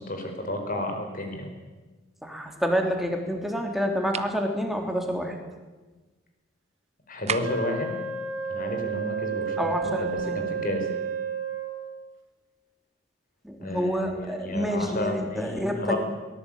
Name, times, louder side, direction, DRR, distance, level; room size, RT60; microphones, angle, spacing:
voice 1, 0.0-1.5 7.1-7.9 8.5-10.9 13.6-16.0, left 1 dB, 45° left, 4 dB, 5.0 m, -32 dB
voice 2, 2.2-5.3 9.6-10.4 13.4-16.0, equal, ahead, 2 dB, 3.5 m, -28 dB
sound 1, 4.1-4.4 7.3-7.7, right 7 dB, 35° right, 0.9 m, -32 dB
Wind instrument woodwind instrument, 7.4-12.0, right 6 dB, 70° right, 3.2 m, -31 dB
22.0 x 19.0 x 8.9 m, 1.2 s
head